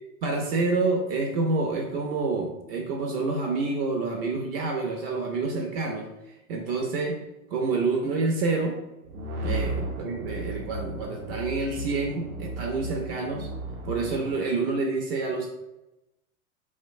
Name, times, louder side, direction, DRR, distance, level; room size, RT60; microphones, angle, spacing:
voice 1, 0.2-6.1 6.5-7.2 7.5-8.7 9.4-13.5 13.9-15.5, right 3 dB, 45° right, 1 dB, 0.4 m, -28 dB
sound 1, 9.0-14.3, right 1 dB, 85° right, 0.6 m, -34 dB
2.7 x 2.1 x 2.4 m, 0.95 s
hypercardioid pair, 95°, 43 cm